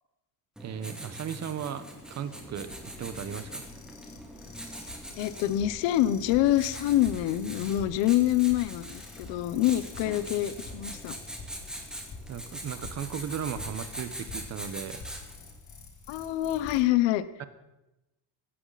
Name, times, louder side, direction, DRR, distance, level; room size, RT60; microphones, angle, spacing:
Writing, 0.6-15.5, right 1 dB, ahead, 2.4 m, -43 dB
voice 1, 0.6-3.6 12.3-15.1 17.4-17.5, right 8 dB, 40° right, 11 dB, 1.3 m, -36 dB
sound 1, 1.4-16.8, left 3 dB, 40° left, 2.8 m, -47 dB
voice 2, 5.2-11.1 16.1-17.2, left 13 dB, 85° left, 15 dB, 1.2 m, -26 dB
17.0 x 16.0 x 4.2 m, 0.97 s
cardioid pair, 160°, 43 cm